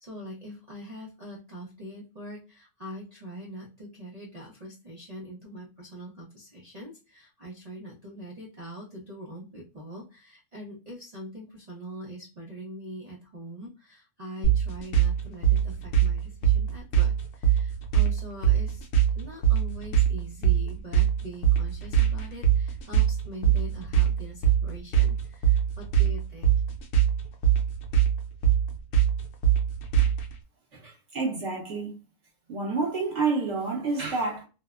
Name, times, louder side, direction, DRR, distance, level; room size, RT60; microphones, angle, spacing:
voice 1, 0.0-18.9 19.1-26.6, equal, 70° right, 0.3 m, -43 dB
sound 1, 14.4-30.3, right 9 dB, 65° left, 0.9 m, -22 dB
voice 2, 30.7-32.0 32.5-34.4, right 4 dB, 55° right, 1.3 m, -29 dB
2.9 x 2.0 x 2.3 m
omnidirectional pair, 1.6 m